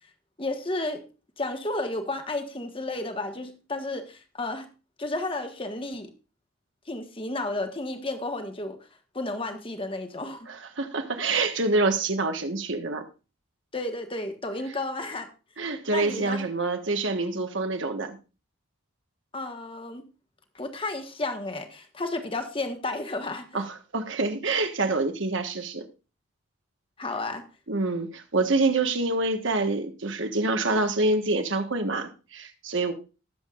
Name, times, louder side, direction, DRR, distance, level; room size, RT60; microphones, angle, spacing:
voice 1, 0.4-1.0 1.4-4.7 5.0-6.1 6.9-8.8 9.1-10.5 13.7-15.3 15.9-16.5 19.3-20.0 20.5-23.6 27.0-27.4, left 2 dB, 25° left, 1.4 m, -32 dB
voice 2, 10.5-13.0 15.6-18.2 23.5-25.9 27.7-32.9, right 3 dB, 60° right, 1.4 m, -26 dB
20.0 x 7.5 x 2.5 m
head